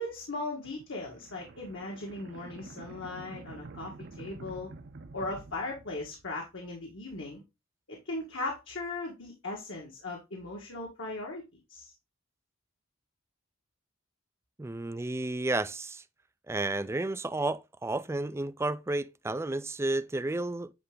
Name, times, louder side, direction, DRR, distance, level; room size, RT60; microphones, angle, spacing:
voice 1, 0.0-4.7 5.1-7.4 7.9-11.4 11.7-11.9, left 2 dB, 65° left, 1.7 m, -38 dB
sound 1, 0.6-6.5, right 3 dB, 55° right, 0.7 m, -48 dB
voice 2, 14.6-16.0 16.5-20.7, right 2 dB, 10° right, 0.3 m, -32 dB
9.5 x 3.3 x 3.8 m
head